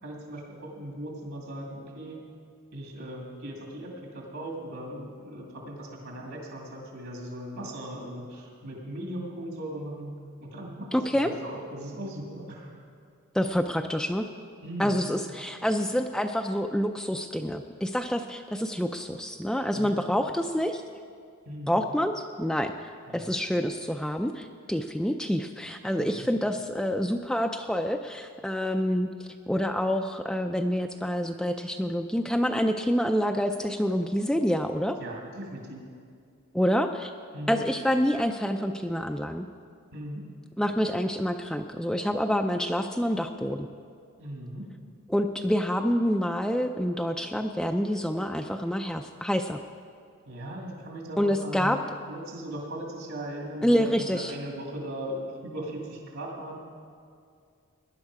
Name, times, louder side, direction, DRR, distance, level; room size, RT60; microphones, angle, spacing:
voice 1, 0.0-2.2 2.7-10.1 10.4-12.7 14.6-15.1 19.7-20.0 21.5-21.8 23.1-23.3 26.0-26.3 35.0-35.8 37.3-37.6 39.9-40.2 44.2-44.6 50.3-51.8 52.1-56.6, right 1 dB, 65° right, -1 dB, 2.4 m, -38 dB
voice 2, 10.9-11.3 13.3-14.3 14.8-20.8 21.7-35.0 36.5-37.1 37.5-39.5 40.6-43.7 45.1-49.6 51.2-51.8 53.6-54.3, equal, 5° left, 5 dB, 0.3 m, -27 dB
18.0 x 10.5 x 4.8 m, 2.3 s
head